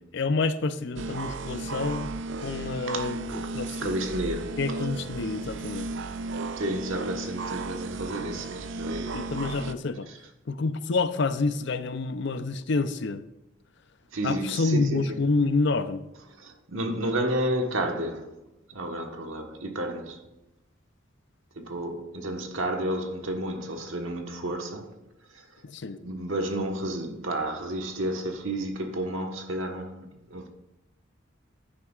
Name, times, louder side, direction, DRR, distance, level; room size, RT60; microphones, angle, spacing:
voice 1, 0.1-2.1 2.4-3.9 4.6-5.9 9.1-10.1 10.5-13.2 14.2-16.0 25.6-26.0, left 3 dB, 60° left, 0.5 m, -28 dB
sound 1, 1.0-9.7, right 3 dB, 65° right, 0.5 m, -35 dB
voice 2, 2.9-3.5 3.8-4.9 6.6-9.3 10.1-10.2 14.1-15.2 16.4-18.4 18.7-20.3 21.6-24.9 25.3-25.4 26.0-30.5, right 1 dB, 85° right, 1.3 m, -31 dB
10.5 x 9.8 x 2.4 m
head